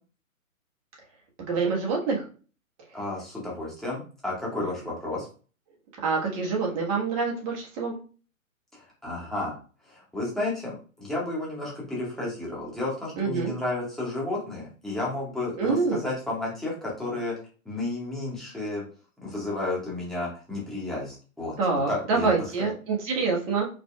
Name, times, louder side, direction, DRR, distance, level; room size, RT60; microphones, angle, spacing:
voice 1, 1.5-2.2 6.0-8.0 13.2-13.5 15.6-16.0 21.6-23.7, right 4 dB, 25° right, -2 dB, 1.4 m, -26 dB
voice 2, 2.9-5.3 8.7-9.5 9.9-17.3 17.6-18.8 19.2-21.5 21.9-22.3 22.6-22.7, left 2 dB, ahead, -6 dB, 1.5 m, -32 dB
5.3 x 4.1 x 2.3 m, 0.38 s
hypercardioid pair, 145°, 42 cm